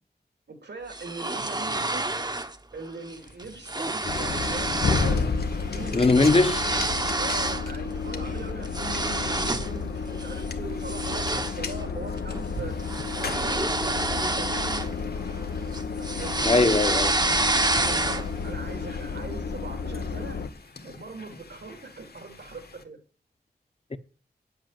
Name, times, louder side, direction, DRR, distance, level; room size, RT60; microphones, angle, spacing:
voice 1, 0.5-2.1 2.7-6.2 7.2-12.7 13.1-14.9 16.1-16.4 17.2-20.5 20.8-23.0, right 3 dB, 80° right, 3.0 m, -41 dB
sound 1, 0.9-2.6 2.9-3.1 3.4-5.2 5.5-7.7 8.1-9.8 10.2-10.4 10.8-15.4 15.7-18.4, right 2 dB, 25° right, 1.0 m, -28 dB
sound 2, 3.1-22.8, left 4 dB, 65° left, 1.7 m, -45 dB
sound 3, 4.0-20.5, left 5 dB, 85° left, 1.0 m, -31 dB
voice 2, 5.9-6.6 16.4-17.2 23.9-24.0, left 3 dB, 35° left, 1.0 m, -20 dB
10.0 x 8.0 x 7.6 m
wide cardioid pair, 95°, 17 cm